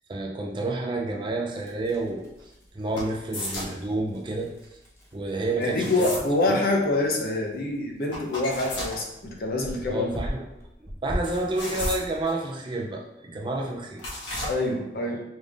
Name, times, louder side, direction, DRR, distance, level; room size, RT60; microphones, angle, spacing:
voice 1, 0.1-4.5 5.1-6.1 6.5-6.7 9.9-10.5 11.0-14.0, right 2 dB, 25° right, 0 dB, 0.4 m, -30 dB
sound 1, 1.5-12.3, equal, 15° left, 0.8 m, -40 dB
sound 2, 3.0-3.8 5.7-6.3 8.1-9.0 11.2-12.3 14.0-14.5, left 1 dB, 90° left, 1.2 m, -33 dB
voice 2, 5.6-10.1 14.5-15.2, left 2 dB, 50° left, 0 dB, 0.7 m, -26 dB
5.1 x 3.5 x 2.4 m, 0.87 s
head